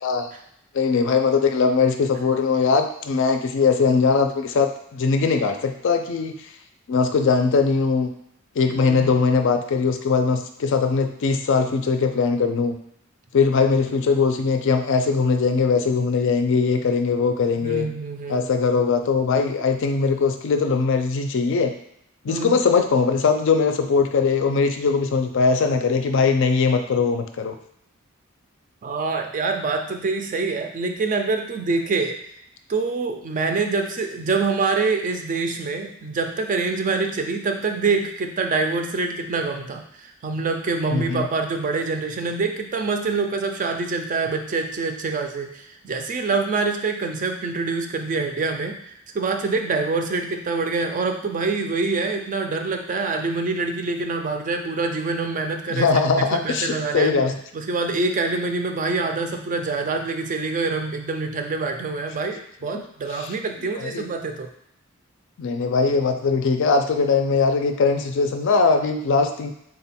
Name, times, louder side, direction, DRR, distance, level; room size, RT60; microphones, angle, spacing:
voice 1, 0.7-6.3 6.9-8.1 8.6-12.7 13.3-17.9 18.3-21.7 22.2-27.5 40.9-41.3 55.7-57.4 63.2-63.3 63.8-64.1 65.4-69.5, left 4 dB, 65° left, 6 dB, 0.4 m, -20 dB
voice 2, 8.7-9.1 17.6-18.5 22.3-22.5 28.8-32.2 32.7-57.2 57.5-64.5, right 3 dB, 40° right, 5 dB, 0.4 m, -25 dB
3.8 x 2.2 x 4.1 m, 0.77 s
head